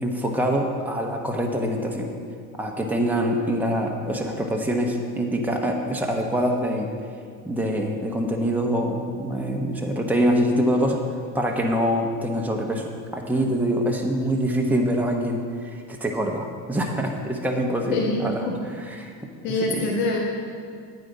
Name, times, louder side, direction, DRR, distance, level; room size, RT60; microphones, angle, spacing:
voice 1, 0.0-2.1 2.5-6.9 7.4-11.0 11.3-18.4 19.0-19.1 19.5-19.8, equal, 5° right, 0 dB, 1.2 m, -25 dB
voice 2, 17.9-18.6 19.4-20.2, left 2 dB, 85° left, -1 dB, 1.3 m, -25 dB
9.2 x 9.0 x 4.2 m, 2.2 s
hypercardioid pair, 55°, 48 cm